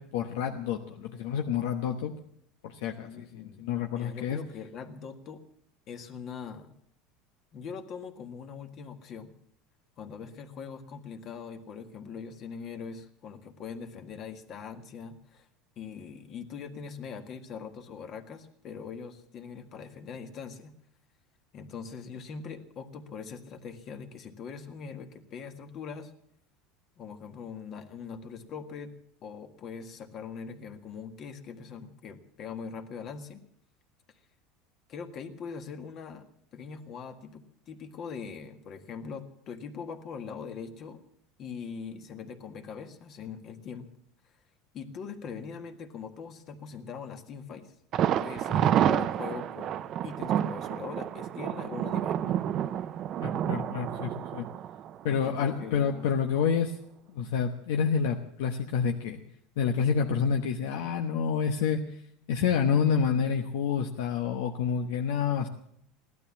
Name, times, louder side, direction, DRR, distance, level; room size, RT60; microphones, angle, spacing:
voice 1, 0.0-2.1 2.6-4.4 53.2-54.5 55.0-56.8 57.1-59.2 59.6-61.8 62.3-65.5, left 7 dB, 80° left, 4 dB, 1.1 m, -28 dB
voice 2, 2.9-5.4 5.9-6.8 7.5-9.3 10.0-15.5 15.7-20.7 21.5-26.1 27.0-33.4 34.9-36.2 36.5-41.0 41.4-43.9 44.7-47.7 48.2-52.4 55.0-56.1, left 6 dB, 45° left, 7 dB, 1.7 m, -42 dB
Thunder, 47.9-55.7 56.0-56.1 56.5-56.6, right 10 dB, 45° right, 0.6 m, -29 dB
16.5 x 12.0 x 7.2 m, 0.69 s
supercardioid pair, 130°, 0 cm